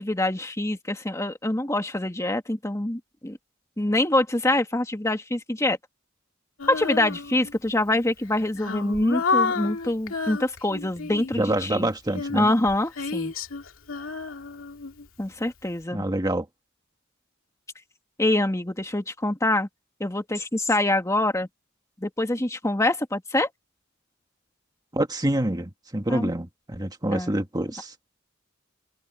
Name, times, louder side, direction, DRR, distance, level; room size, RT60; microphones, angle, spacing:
voice 1, 0.0-3.4 3.8-5.8 6.6-11.9 12.3-13.3 15.2-16.0 18.2-19.7 20.0-21.5 22.0-23.5 26.1-26.3 27.1-27.3, left 1 dB, 15° left, 1.9 m, -25 dB
Female singing, 6.6-7.7 8.2-11.5 12.1-15.3, left 4 dB, 85° left, 2.3 m, -30 dB
voice 2, 11.4-12.5 15.9-16.5 24.9-27.9, right 1 dB, 20° right, 1.7 m, -26 dB
open air
head